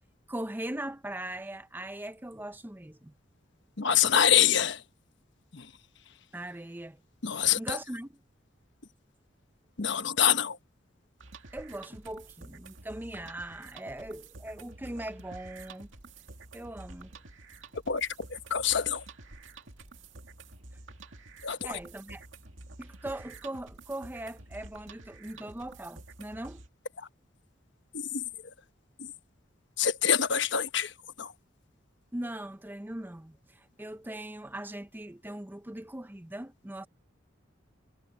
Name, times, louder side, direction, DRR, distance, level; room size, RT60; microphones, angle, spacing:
voice 1, 0.3-3.1 6.3-7.0 7.6-8.1 11.5-15.9 16.5-17.1 21.6-22.2 22.8-26.6 32.1-36.9, right 1 dB, 10° right, 0.6 m, -40 dB
voice 2, 3.8-4.8 5.5-5.7 7.2-7.8 9.8-10.6 17.9-19.0 21.4-21.8 27.0-27.1 27.9-28.5 29.0-29.1 29.8-31.3, left 8 dB, 65° left, 1.1 m, -26 dB
sound 1, 11.2-26.7, right 3 dB, 85° right, 2.2 m, -49 dB
head